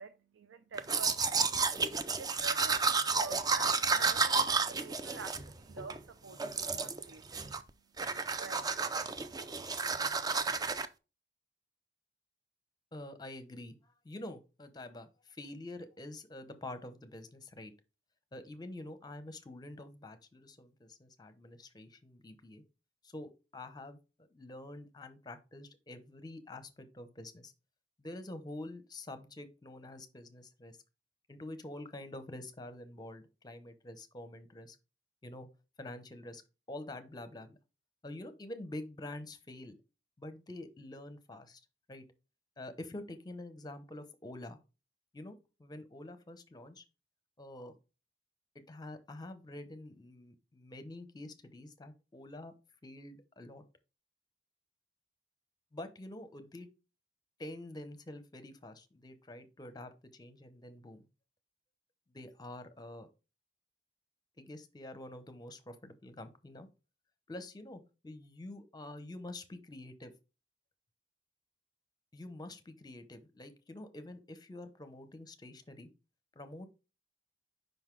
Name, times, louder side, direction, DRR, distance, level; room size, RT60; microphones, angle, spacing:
voice 1, 0.0-7.7 8.3-8.7, right 5 dB, 90° right, 0.5 m, -48 dB
Domestic sounds home sounds, 0.8-6.0 6.4-7.0 7.3-7.7 8.0-10.9, right 4 dB, 20° right, 0.4 m, -31 dB
voice 2, 12.9-17.7 18.3-22.6 23.0-27.5 28.0-30.8 31.3-34.8 35.2-35.5 35.8-36.4 36.7-37.6 38.0-39.8 40.2-41.6 41.9-42.0 42.6-44.6 45.1-46.8 47.4-47.7 48.7-52.5 52.8-53.6 55.7-56.7 57.4-61.1 62.1-63.1 64.4-66.7 67.3-70.1 72.1-75.9 76.4-76.7, left 1 dB, 20° left, 0.7 m, -47 dB
5.3 x 3.9 x 4.5 m
head